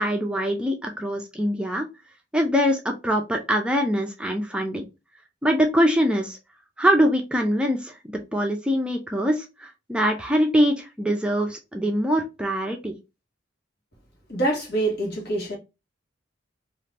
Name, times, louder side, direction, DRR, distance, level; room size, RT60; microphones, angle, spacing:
voice 1, 0.0-1.9 2.3-4.8 5.4-6.4 6.8-13.0, equal, 5° right, 0.4 m, -23 dB
voice 2, 14.3-15.6, right 2 dB, 60° left, 1.3 m, -25 dB
2.7 x 2.5 x 3.2 m
head